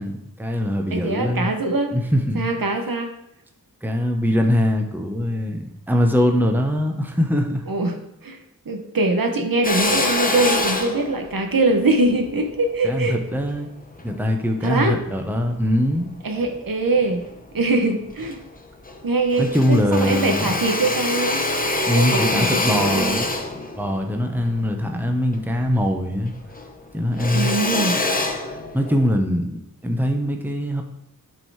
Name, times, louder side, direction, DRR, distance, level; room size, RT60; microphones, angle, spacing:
voice 1, 0.0-1.5 1.9-2.5 3.8-7.6 12.8-13.7 14.0-16.1 19.4-20.6 21.9-23.3 23.8-26.3 26.9-27.5 28.5-30.8, equal, 5° right, 3 dB, 1.0 m, -22 dB
voice 2, 0.9-1.9 2.3-3.1 7.7-8.0 8.2-8.4 8.7-13.1 14.6-15.0 16.2-17.2 17.5-18.4 19.0-21.4 21.9-23.2 27.3-28.0, right 2 dB, 70° right, 5 dB, 1.1 m, -22 dB
Drill, 9.6-14.2 14.7-15.9 16.4-17.3 17.7-17.8 18.0-19.0 19.3-26.0 26.3-29.1, left 2 dB, 25° left, 1.0 m, -26 dB
11.5 x 4.6 x 4.8 m, 0.82 s
wide cardioid pair, 85°, 36 cm